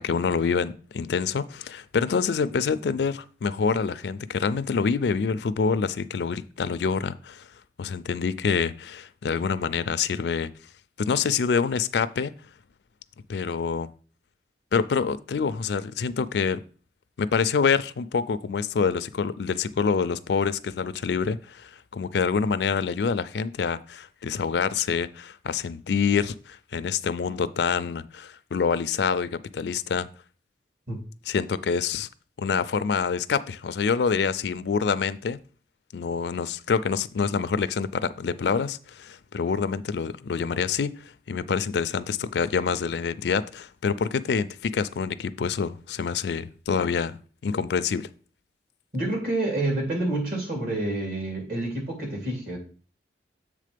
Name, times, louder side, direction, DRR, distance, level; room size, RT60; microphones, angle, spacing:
voice 1, 0.0-7.5 7.8-10.5 11.0-12.3 13.3-13.9 14.7-16.6 17.2-30.1 31.3-32.1 32.4-35.4 35.9-47.2 47.4-48.1, left 5 dB, 75° left, 0.4 m, -26 dB
voice 2, 48.9-52.6, right 2 dB, 55° right, 2.6 m, -28 dB
7.5 x 3.6 x 5.1 m
head